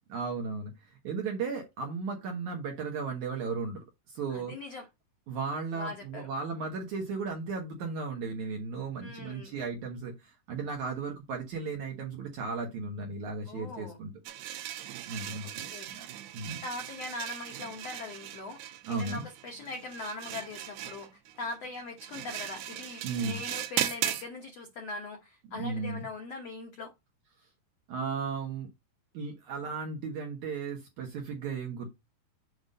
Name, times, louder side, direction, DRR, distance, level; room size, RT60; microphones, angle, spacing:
voice 1, 0.1-4.5 5.3-14.1 15.1-16.1 16.3-16.6 18.9-19.2 23.0-23.4 25.5-26.1 27.9-28.7 29.1-31.9, right 4 dB, 70° right, 1.9 m, -35 dB
voice 2, 4.3-4.9 5.7-6.3 9.0-9.5 13.5-14.0 15.4-16.1 16.6-26.9, left 3 dB, 80° left, 1.4 m, -41 dB
sound 1, 14.3-24.3, right 12 dB, 85° right, 2.9 m, -38 dB
7.9 x 2.6 x 5.3 m
omnidirectional pair, 4.7 m